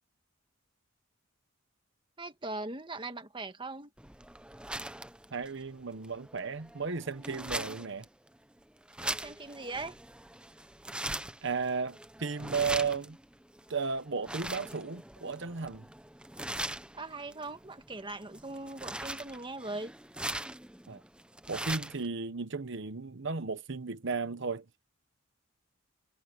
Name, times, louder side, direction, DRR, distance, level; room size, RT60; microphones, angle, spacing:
voice 1, 2.2-3.9 9.0-10.0 16.9-19.9, right 2 dB, 25° right, 1.6 m, -40 dB
sound 1, 4.0-22.1, right 1 dB, 5° right, 0.8 m, -41 dB
voice 2, 5.3-8.1 11.4-13.2 13.7-15.8 20.9-21.0 21.5-24.6, right 5 dB, 65° right, 1.0 m, -34 dB
head